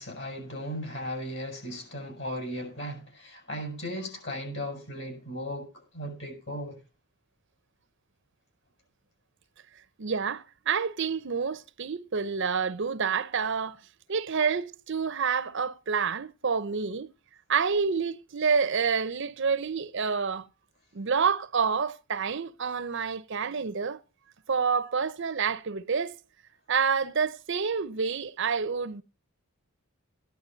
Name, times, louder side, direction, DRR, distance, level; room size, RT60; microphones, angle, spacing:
voice 1, 0.0-6.8, equal, 55° left, 6.9 m, -36 dB
voice 2, 10.0-13.8 14.1-17.1 17.5-20.5 20.9-24.0 24.5-26.2 26.7-29.0, right 5 dB, 55° right, 0.7 m, -28 dB
15.0 x 10.5 x 3.9 m
head